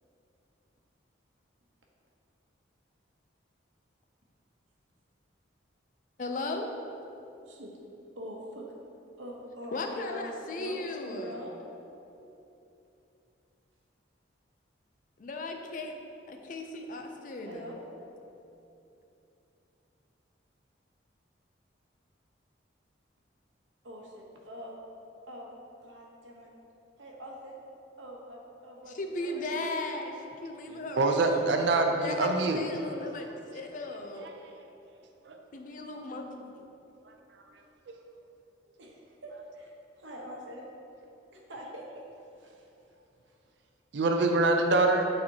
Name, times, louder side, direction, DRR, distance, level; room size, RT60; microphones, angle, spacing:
voice 1, 6.2-6.8 9.7-11.4 15.2-15.9 16.3-17.8 28.8-30.1 30.4-31.5 31.9-33.3 33.5-34.3 35.5-36.7, left 2 dB, 45° left, 4 dB, 0.4 m, -37 dB
voice 2, 8.2-8.7 9.2-11.6 17.5-17.8 23.8-24.7 25.3-25.5 25.8-26.5 27.0-27.6 28.0-30.0 32.7-33.4 38.8-39.0 39.2-40.6 41.3-41.9 42.3-42.6, equal, 80° right, -1 dB, 1.0 m, -44 dB
voice 3, 30.7-32.6 35.3-35.4 43.9-45.0, right 2 dB, 65° right, 4 dB, 0.4 m, -25 dB
8.7 x 4.3 x 2.8 m, 2.9 s
head